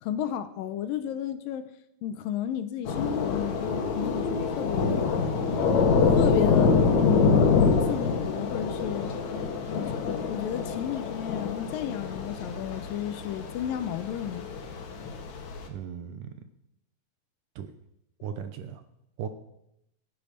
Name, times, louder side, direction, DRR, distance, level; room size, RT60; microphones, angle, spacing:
voice 1, 0.0-1.6 2.0-5.2 6.0-9.1 9.7-10.0 10.3-14.5, left 10 dB, 80° left, 11 dB, 2.3 m, -33 dB
Thunder / Rain, 2.8-15.7, left 5 dB, 55° left, 2.7 m, -26 dB
voice 2, 15.7-16.3 17.6-17.7 18.2-18.8 19.2-19.3, right 8 dB, 70° right, 9 dB, 2.1 m, -37 dB
16.0 x 8.9 x 6.4 m, 0.81 s
omnidirectional pair, 4.3 m